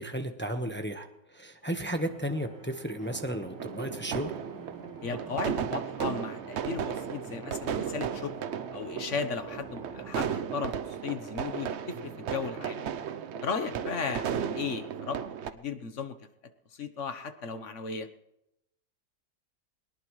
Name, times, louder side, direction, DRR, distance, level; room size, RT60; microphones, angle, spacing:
voice 1, 0.0-4.3, right 1 dB, 10° left, 5 dB, 1.0 m, -34 dB
sound 1, 1.6-15.1, right 1 dB, 30° left, 3.7 m, -56 dB
sound 2, 1.8-10.2, right 3 dB, 15° right, 1.5 m, -50 dB
sound 3, 3.0-15.5, right 8 dB, 55° right, 0.8 m, -35 dB
voice 2, 5.0-8.3 8.7-12.8 13.4-15.2 15.5-16.2 16.7-18.1, left 5 dB, 55° left, 9 dB, 1.3 m, -35 dB
22.0 x 19.0 x 3.2 m, 0.85 s
omnidirectional pair, 1.6 m